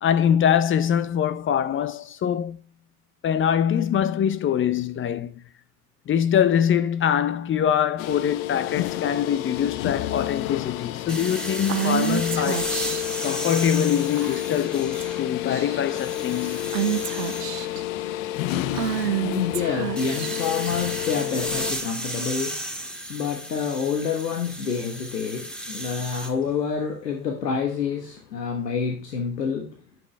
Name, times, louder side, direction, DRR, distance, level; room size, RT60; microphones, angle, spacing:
voice 1, 0.0-2.6 3.2-5.4 6.1-12.8 13.2-16.6, left 9 dB, 25° left, 0.7 m, -23 dB
sound 1, 8.0-21.7, left 14 dB, 55° left, 0.8 m, -30 dB
sound 2, 11.1-15.4 15.8-17.4 20.0-26.3, right 1 dB, ahead, 1.8 m, -34 dB
Female speech woman speaking / Whispering, 11.7-13.2 14.2-14.6 15.0-15.2 15.5-16.0 16.7-17.8 18.7-20.7, right 9 dB, 85° right, 0.9 m, -28 dB
voice 2, 19.3-29.8, left 6 dB, 85° left, 1.2 m, -28 dB
10.5 x 6.1 x 3.2 m
hypercardioid pair, 80°, 47 cm